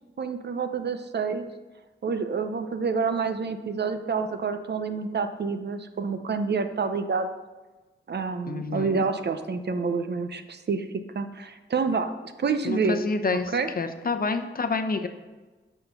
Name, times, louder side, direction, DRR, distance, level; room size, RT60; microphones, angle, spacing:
voice 1, 0.2-1.5 2.0-7.3 8.1-10.9 11.1-12.1 12.4-13.0 13.3-13.7, right 5 dB, 55° right, 8 dB, 0.7 m, -28 dB
voice 2, 8.5-9.0 12.6-15.1, left 4 dB, 45° left, 7 dB, 0.8 m, -28 dB
8.2 x 5.9 x 5.6 m, 1.2 s
wide cardioid pair, 95°, 21 cm